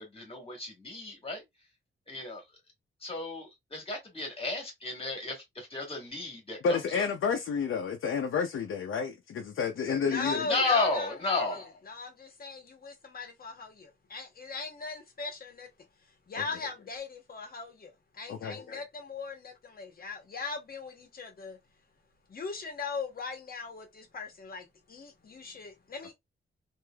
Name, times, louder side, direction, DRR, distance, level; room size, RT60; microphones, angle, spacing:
voice 1, 0.0-1.4 2.1-2.4 3.0-7.0 10.4-11.6, left 3 dB, 30° left, 1.5 m, -33 dB
voice 2, 6.6-10.5 16.4-16.5 18.3-18.6, left 5 dB, 80° left, 0.6 m, -30 dB
voice 3, 9.9-15.7 16.3-21.6 22.3-26.1, left 4 dB, 45° left, 1.0 m, -39 dB
3.2 x 2.6 x 2.2 m
wide cardioid pair, 130°, 20 cm